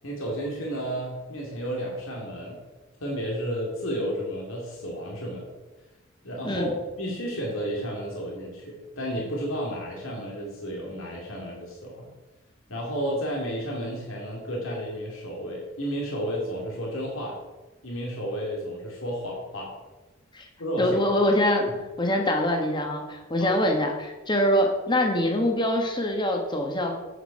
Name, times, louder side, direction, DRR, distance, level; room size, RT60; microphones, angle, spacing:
voice 1, 0.0-2.6 3.0-5.5 6.2-6.7 7.0-12.1 12.7-17.4 17.8-19.7 20.6-21.0 21.7-21.8 23.4-23.5, equal, 75° left, -2 dB, 2.5 m, -32 dB
voice 2, 20.8-21.7 22.0-27.0, left 1 dB, 20° left, 3 dB, 1.4 m, -24 dB
8.3 x 7.9 x 5.4 m, 1.1 s
head